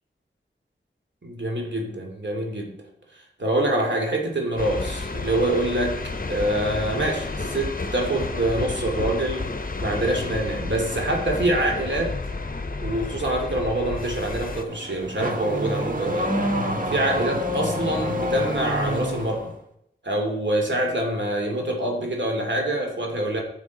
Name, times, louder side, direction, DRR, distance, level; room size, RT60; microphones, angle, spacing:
voice 1, 1.2-2.7 3.1-6.0 6.3-9.5 9.8-12.1 12.8-16.4 16.9-19.5 20.0-23.4, right 1 dB, 60° right, 1 dB, 2.5 m, -25 dB
sound 1, 4.6-14.6, left 3 dB, 45° left, 0.8 m, -31 dB
Car / Accelerating revving vroom, 14.5-19.5, equal, 40° right, 1.5 m, -27 dB
10.5 x 7.1 x 4.1 m, 0.75 s
wide cardioid pair, 40°, 21 cm